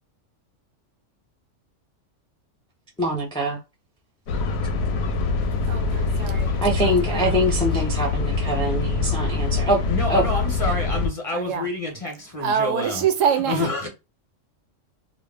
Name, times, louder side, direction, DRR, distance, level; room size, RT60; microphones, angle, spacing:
voice 1, 3.0-3.6 6.6-9.8 10.1-10.2, equal, 10° left, 0.3 m, -23 dB
sound 1, 4.3-11.1, left 4 dB, 65° left, 0.8 m, -24 dB
voice 2, 5.7-6.5 7.1-7.4 11.3-11.7 12.4-13.7, right 8 dB, 90° right, 1.0 m, -25 dB
voice 3, 9.9-13.9, left 2 dB, 30° left, 0.8 m, -28 dB
2.4 x 2.0 x 3.3 m
omnidirectional pair, 1.3 m